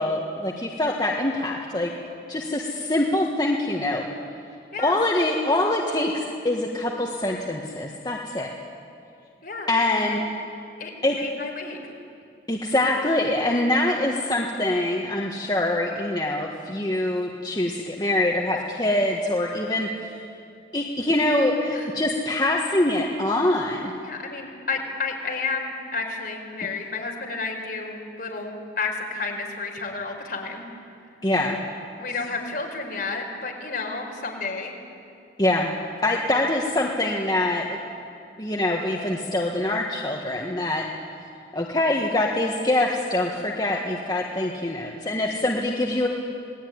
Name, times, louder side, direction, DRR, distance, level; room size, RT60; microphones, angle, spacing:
voice 1, 0.0-1.9 2.3-4.0 4.8-8.5 9.7-10.3 11.0-11.2 12.5-19.9 20.7-23.9 31.2-31.6 35.4-35.7 36.0-37.8 38.4-40.9 41.5-46.1, left 1 dB, 20° left, -1 dB, 1.5 m, -24 dB
voice 2, 10.8-11.8 21.7-22.0 24.0-30.7 32.0-34.7, left 4 dB, 50° left, 0 dB, 4.8 m, -31 dB
27.5 x 19.0 x 9.6 m, 2.5 s
head